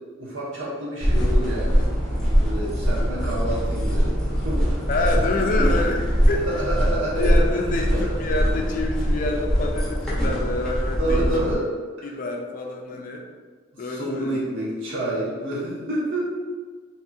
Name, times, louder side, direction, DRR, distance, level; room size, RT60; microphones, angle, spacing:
voice 1, 0.2-1.8 2.4-4.8 5.6-5.7 6.5-7.3 11.0-11.6 12.0-12.1 12.9-13.0 13.8-16.3, right 1 dB, 80° right, -7 dB, 1.0 m, -28 dB
sound 1, 1.0-11.5, equal, 5° left, 0.6 m, -22 dB
voice 2, 4.9-6.6 7.2-11.3 12.0-13.2 13.8-14.4, left 2 dB, 45° left, 2 dB, 0.3 m, -27 dB
2.9 x 2.6 x 2.4 m, 1.5 s
head